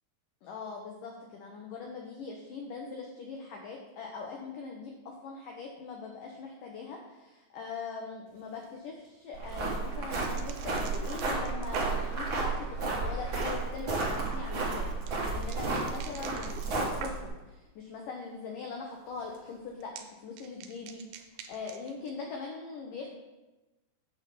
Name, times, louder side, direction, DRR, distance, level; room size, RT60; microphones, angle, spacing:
voice 1, 0.4-17.1 17.5-23.1, left 4 dB, 85° left, 1 dB, 1.9 m, -41 dB
sound 1, 8.3-17.6 17.9-18.5 18.7-22.1, right 7 dB, 80° right, 2.7 m, -49 dB
sound 2, 9.3-17.3, right 3 dB, 65° right, 1.2 m, -32 dB
8.7 x 4.0 x 6.7 m, 1.1 s
omnidirectional pair, 5.0 m